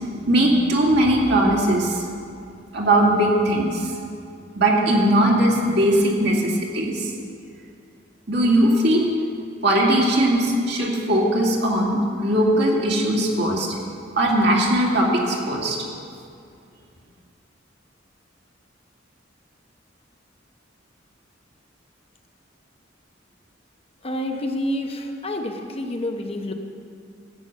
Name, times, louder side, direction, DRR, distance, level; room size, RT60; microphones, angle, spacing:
voice 1, 0.2-2.0 2.7-3.9 4.6-7.1 8.3-9.0 9.6-13.7 14.2-15.8, right 1 dB, 60° right, -2 dB, 2.3 m, -19 dB
voice 2, 24.0-26.5, left 1 dB, 30° left, 4 dB, 0.8 m, -28 dB
13.0 x 8.8 x 6.2 m, 2.3 s
head